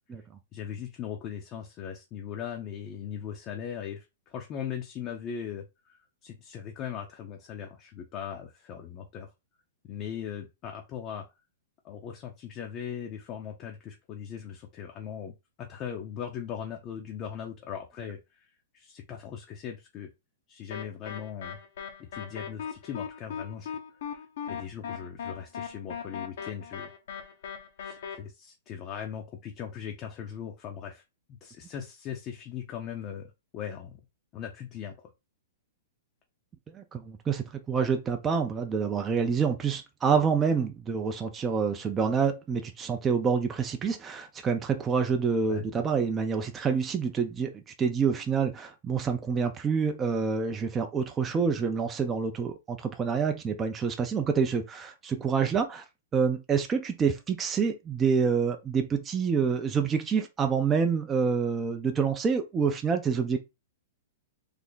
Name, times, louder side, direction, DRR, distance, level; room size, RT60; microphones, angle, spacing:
voice 1, 0.5-9.3 9.9-11.3 11.8-15.3 15.6-20.1 20.5-21.6 22.1-26.9 27.8-31.0 31.4-34.0 34.3-35.1 45.5-45.6, left 8 dB, 35° left, 0.6 m, -39 dB
sound 1, 20.7-28.2, left 7 dB, 70° left, 0.8 m, -38 dB
voice 2, 36.7-47.5 47.8-55.8 56.1-63.4, right 6 dB, 20° right, 0.4 m, -27 dB
3.3 x 2.1 x 3.9 m
hypercardioid pair, 135°, 0 cm